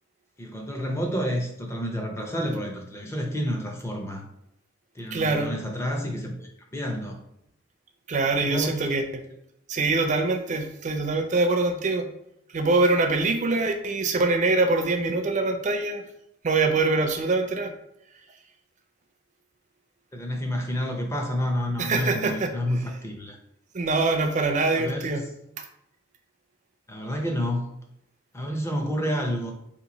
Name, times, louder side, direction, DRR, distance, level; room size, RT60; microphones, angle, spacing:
voice 1, 0.4-4.2 5.0-7.2 8.4-8.9 20.1-23.4 24.8-25.3 26.9-27.7 28.3-29.5, equal, 15° left, 2 dB, 0.5 m, -29 dB
voice 2, 5.1-5.5 8.1-9.2 9.7-12.1 12.5-16.0 16.4-17.7 21.8-22.5 23.7-25.2, right 3 dB, 40° right, 6 dB, 0.4 m, -24 dB
2.9 x 2.6 x 3.9 m, 0.80 s
head